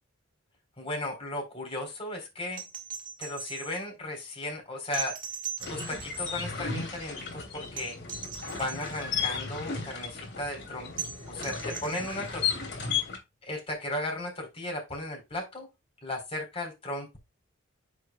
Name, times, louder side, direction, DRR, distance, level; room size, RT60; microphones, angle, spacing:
voice 1, 0.8-2.6 3.2-5.2 5.7-8.0 8.5-10.9 11.3-12.4 12.8-12.9 13.4-15.7 16.0-17.2, left 1 dB, 30° left, 1 dB, 4.3 m, -35 dB
sound 1, 2.5-3.8 4.9-6.5 7.8-9.0 11.0-12.4 14.2-14.3, right 7 dB, 45° right, 1.7 m, -39 dB
sound 2, 5.6-13.2, left 6 dB, 60° left, 3.1 m, -35 dB
9.7 x 6.6 x 2.4 m, 0.22 s
head